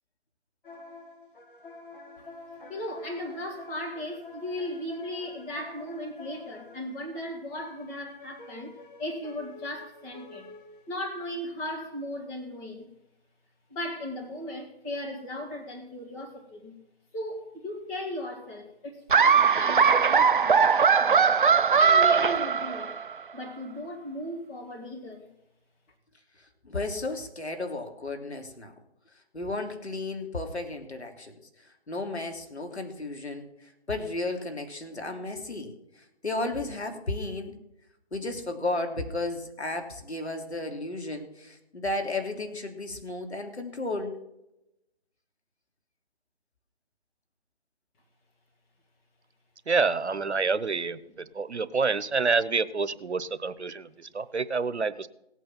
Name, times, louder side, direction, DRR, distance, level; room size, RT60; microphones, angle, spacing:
sound 1, 0.6-7.0 7.5-11.0, left 3 dB, 50° left, 2.3 m, -48 dB
voice 1, 2.7-8.7 9.0-10.5 10.9-12.9 13.7-16.8 17.1-21.3 21.8-22.9 23.3-25.3, left 1 dB, 10° left, -1 dB, 1.9 m, -37 dB
Laughter, 19.1-23.1, right 6 dB, 50° right, 0.5 m, -20 dB
voice 2, 26.6-28.7 29.3-37.5 38.1-44.2, left 2 dB, 80° left, 5 dB, 3.1 m, -34 dB
voice 3, 49.7-55.1, right 4 dB, 85° right, 16 dB, 1.0 m, -28 dB
17.5 x 8.5 x 6.0 m, 0.85 s
figure-of-eight pair, 155°, 33 cm